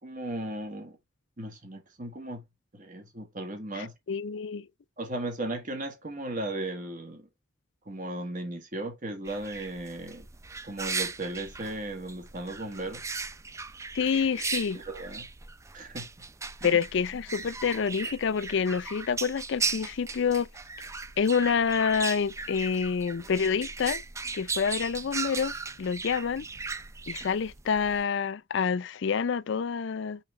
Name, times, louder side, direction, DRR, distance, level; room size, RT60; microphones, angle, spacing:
voice 1, 0.0-1.0 1.4-2.4 2.7-3.9 5.0-7.3 7.9-10.3 10.6-13.0 14.7-15.3 15.7-16.1 16.6-16.9, right 1 dB, 40° right, 1.5 m, -36 dB
voice 2, 3.7-4.7 13.9-14.8 16.6-20.5 21.2-24.0 24.3-26.4 27.1-30.2, left 6 dB, 65° left, 0.4 m, -27 dB
sound 1, 9.3-28.0, right 4 dB, 15° right, 0.4 m, -37 dB
5.8 x 5.1 x 3.2 m
head